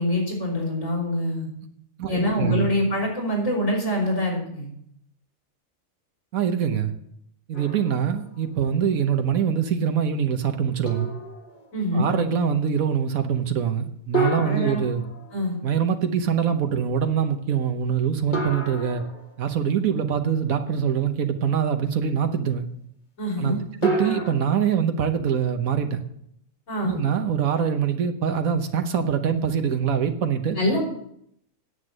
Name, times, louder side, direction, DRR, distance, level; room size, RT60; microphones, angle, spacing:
voice 1, 0.0-1.5 2.1-4.7 11.7-12.1 14.4-14.8 15.3-15.5 23.2-23.6 26.7-27.0 30.5-30.8, left 1 dB, 70° left, -2 dB, 5.0 m, -25 dB
voice 2, 2.0-2.7 6.3-6.9 7.5-11.1 11.9-15.0 15.6-19.0 19.4-22.7 23.4-23.5 23.8-26.0 26.8-30.6, right 7 dB, 85° right, 7 dB, 1.4 m, -24 dB
sound 1, 7.5-8.4 8.9-9.0 10.9-11.8 14.1-15.7 18.3-19.7 23.8-24.3, right 2 dB, 35° left, 1.6 m, -30 dB
9.9 x 8.1 x 7.4 m, 0.71 s
omnidirectional pair, 1.4 m